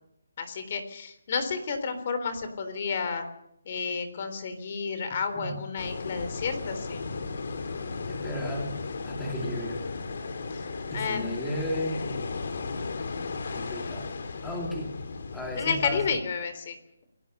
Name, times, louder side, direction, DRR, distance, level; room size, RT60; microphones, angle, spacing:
voice 1, 0.4-3.3 3.7-7.1 10.5-10.6 10.9-11.3 15.6-16.8, left 5 dB, 35° left, 9 dB, 3.4 m, -31 dB
sound 1, 5.8-16.2, left 4 dB, 55° left, 2.9 m, -35 dB
voice 2, 8.1-8.8 9.0-9.9 10.6-12.3 13.5-14.9 15.3-16.2, equal, 5° left, -1 dB, 2.6 m, -35 dB
28.5 x 17.5 x 6.7 m, 0.78 s
hypercardioid pair, 170°, 0 cm